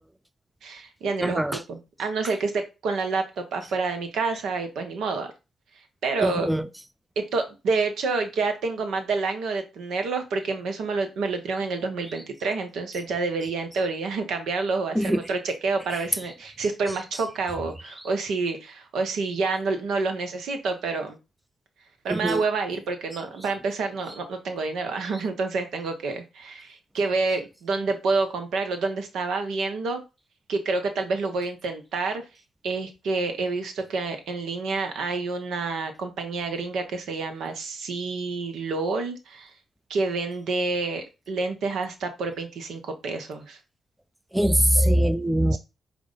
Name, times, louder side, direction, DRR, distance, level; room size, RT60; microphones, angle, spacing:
voice 1, 0.6-5.3 6.0-6.5 7.2-21.2 22.0-30.0 30.5-32.2 32.6-39.5 39.9-43.6 45.5-45.6, right 3 dB, 70° right, 0.7 m, -28 dB
voice 2, 1.2-1.6 6.2-6.6 15.0-15.2 22.1-22.4 44.3-45.6, right 1 dB, 10° right, 0.3 m, -22 dB
4.7 x 2.2 x 3.7 m
hypercardioid pair, 45°, 0 cm